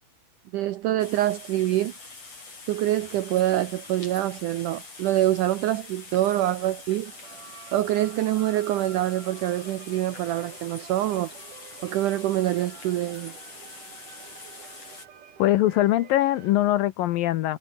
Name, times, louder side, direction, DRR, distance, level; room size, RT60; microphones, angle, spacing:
voice 1, 0.5-1.9 2.7-7.1 7.7-11.3 11.8-13.3, right 14 dB, 85° right, 1.8 m, -25 dB
sound 1, 1.0-15.1, left 3 dB, 40° left, 8.6 m, -44 dB
sound 2, 7.1-16.7, right 8 dB, 55° right, 3.8 m, -49 dB
voice 2, 15.4-17.6, left 14 dB, 75° left, 2.3 m, -22 dB
omnidirectional pair, 4.7 m